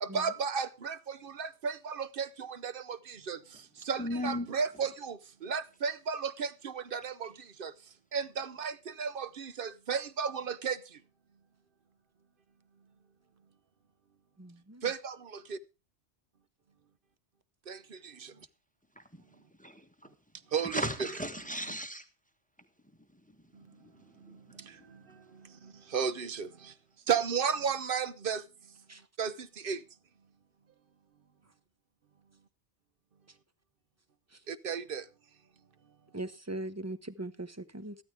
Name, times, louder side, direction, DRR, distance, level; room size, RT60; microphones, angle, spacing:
voice 1, 0.0-2.3 2.6-2.8 3.3-3.4 3.9-5.2 5.4-7.3 7.6-7.7 8.1-8.7 9.0-10.8 14.8-15.1 17.7-17.8 20.5-20.8 25.9-26.5 27.1-28.4 29.2-29.3 29.6-29.8 34.5-35.0, right 6 dB, 55° right, 0.9 m, -33 dB
voice 2, 4.0-4.5 19.1-19.2 19.6-19.8 20.7-22.0 23.8-23.9 24.3-24.4, equal, 5° left, 1.3 m, -35 dB
voice 3, 14.4-14.8 28.9-29.0 36.1-38.0, right 2 dB, 15° right, 0.8 m, -40 dB
14.0 x 13.0 x 3.4 m
omnidirectional pair, 1.1 m